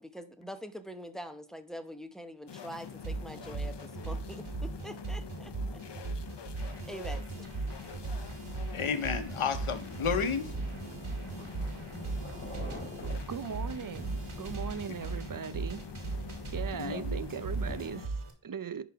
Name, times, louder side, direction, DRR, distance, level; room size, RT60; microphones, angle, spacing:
voice 1, 0.0-5.8 6.8-7.5, equal, ahead, 0.9 m, -44 dB
sound 1, 2.5-18.1, left 7 dB, 55° left, 0.7 m, -46 dB
sound 2, 2.8-18.3, right 3 dB, 80° right, 2.1 m, -38 dB
voice 2, 8.7-10.5 16.7-17.2, left 6 dB, 85° left, 1.0 m, -32 dB
sound 3, 9.0-18.2, left 1 dB, 25° left, 3.9 m, -48 dB
voice 3, 13.3-15.8 16.5-18.8, right 7 dB, 45° right, 0.6 m, -39 dB
10.5 x 4.0 x 4.6 m
wide cardioid pair, 85°, 49 cm